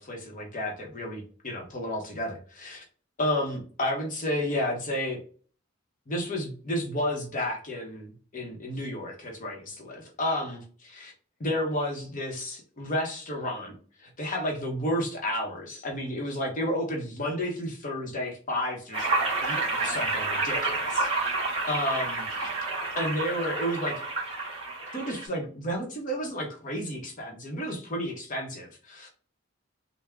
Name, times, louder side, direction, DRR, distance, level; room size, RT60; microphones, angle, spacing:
voice 1, 0.0-2.8 3.2-5.2 6.1-11.1 11.4-19.1 19.4-21.3 21.7-22.5 23.0-24.0 24.9-29.1, left 1 dB, 40° left, 0 dB, 0.7 m, -32 dB
sound 1, 18.9-25.2, right 3 dB, 30° right, 1.4 m, -29 dB
3.5 x 2.0 x 3.3 m, 0.41 s
head